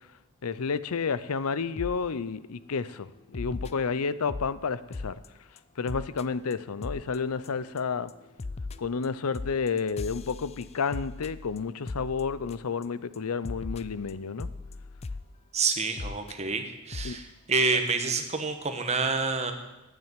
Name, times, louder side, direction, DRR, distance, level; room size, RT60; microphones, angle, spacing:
voice 1, 0.4-5.1 5.8-8.1 8.8-14.5 17.0-17.2, left 5 dB, 85° left, 16 dB, 0.6 m, -31 dB
sound 1, 1.8-2.0 2.4-2.6 3.3-4.5 4.9-5.3 5.6-5.7 5.9-6.2 6.5-6.6 6.8-7.2 7.4-7.8 8.1-12.8 13.1-13.2 13.4-15.3 16.0-16.3 16.9-17.2 17.5-17.6 17.9-18.0, left 3 dB, 30° left, 0.4 m, -38 dB
voice 2, 15.5-19.5, right 4 dB, 30° right, 6 dB, 1.3 m, -28 dB
11.0 x 9.0 x 8.9 m, 1.0 s
head